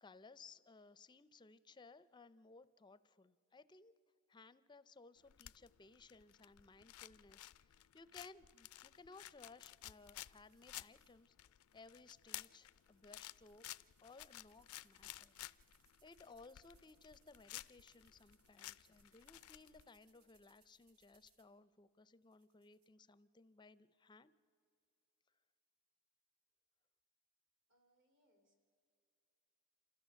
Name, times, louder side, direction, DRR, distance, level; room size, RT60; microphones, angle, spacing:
voice 1, 0.0-3.9 4.3-13.7 14.0-15.5 16.0-24.3, left 3 dB, 20° left, 15 dB, 0.5 m, -61 dB
sound 1, 5.2-19.8, left 15 dB, 80° left, 0.4 m, -54 dB
sound 2, 8.5-11.2 11.6-21.5 22.2-22.9, right 4 dB, 90° right, 1.8 m, -77 dB
voice 2, 27.7-28.6, equal, 60° right, 4 dB, 3.1 m, -77 dB
27.5 x 14.0 x 6.9 m, 2.5 s
head